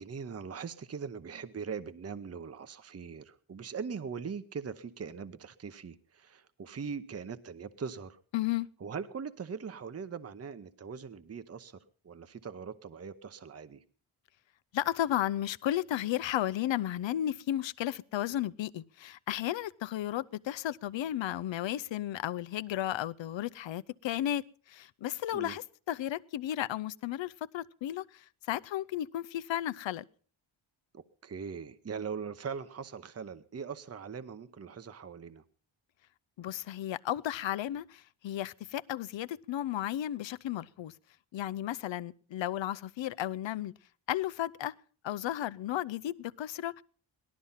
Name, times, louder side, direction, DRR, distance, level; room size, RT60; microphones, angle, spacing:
voice 1, 0.0-8.2 8.8-11.8 12.0-13.8 25.3-25.6 30.9-35.4, right 6 dB, 30° right, 12 dB, 0.9 m, -41 dB
voice 2, 8.3-8.7 14.7-30.0 36.4-40.9 41.3-43.7 44.1-44.7 45.0-46.7, left 12 dB, 70° left, 16 dB, 0.7 m, -34 dB
18.0 x 12.5 x 5.6 m, 0.43 s
cardioid pair, 95°, 47 cm